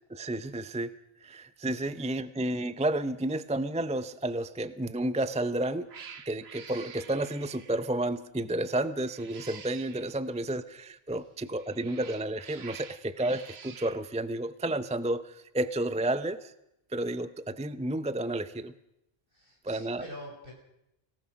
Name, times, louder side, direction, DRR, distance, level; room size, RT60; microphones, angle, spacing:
voice 1, 0.1-0.9 1.2-5.9 6.3-16.5 16.9-18.7 19.6-20.0, right 1 dB, 10° right, 13 dB, 0.5 m, -31 dB
Cat, 5.2-5.5 5.9-7.9 9.0-10.1 11.4-14.0, right 6 dB, 80° right, 1.4 m, -48 dB
voice 2, 19.3-20.5, equal, 60° right, -1 dB, 6.4 m, -46 dB
24.5 x 18.0 x 6.2 m, 0.84 s
omnidirectional pair, 1.0 m